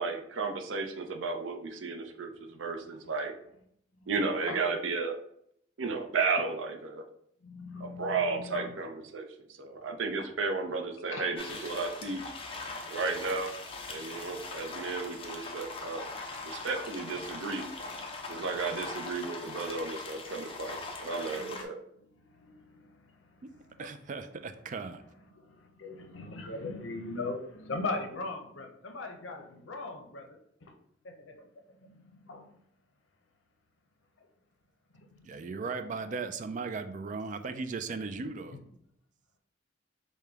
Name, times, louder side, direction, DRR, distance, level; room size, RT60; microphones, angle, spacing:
voice 1, 0.0-3.3 4.1-5.2 5.8-7.0 7.8-9.3 9.6-12.2 12.9-13.5 13.9-16.1 16.4-17.6 18.3-21.8, right 4 dB, 90° right, 6 dB, 0.5 m, -33 dB
voice 2, 7.4-8.7 11.0-11.3 12.8-13.0 14.3-14.5 15.0-15.2 16.3-16.4 21.4-21.6 22.0-23.9 25.3-30.7 31.0-32.5 34.2-34.3 34.9-35.3, left 3 dB, 80° left, 5 dB, 0.6 m, -40 dB
sound 1, 11.4-21.6, left 3 dB, 30° left, 0.5 m, -41 dB
voice 3, 23.8-25.0 35.2-38.6, right 4 dB, 40° right, 9 dB, 0.3 m, -37 dB
4.9 x 2.2 x 3.4 m, 0.71 s
head